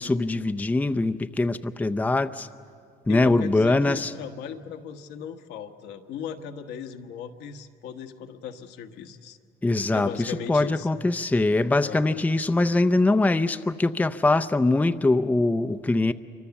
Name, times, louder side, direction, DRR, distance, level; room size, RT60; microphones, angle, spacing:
voice 1, 0.0-2.5 3.1-4.1 9.6-16.1, left 2 dB, 10° left, 10 dB, 0.6 m, -23 dB
voice 2, 3.1-9.4 9.9-10.9 11.8-12.2, left 7 dB, 85° left, 5 dB, 1.3 m, -37 dB
26.5 x 24.0 x 7.1 m, 2.3 s
cardioid pair, 110°, 17 cm